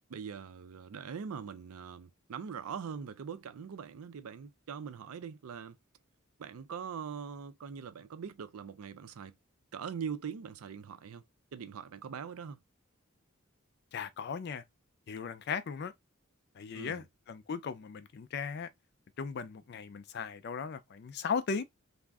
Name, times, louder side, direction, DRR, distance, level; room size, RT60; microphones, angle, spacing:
voice 1, 0.1-5.8 6.4-9.3 9.7-11.2 11.5-12.6 16.7-17.0, right 6 dB, 85° right, 0.4 m, -42 dB
voice 2, 13.9-14.6 15.1-15.9 16.5-18.7 19.2-21.6, left 5 dB, 50° left, 0.4 m, -37 dB
2.5 x 2.1 x 3.4 m
head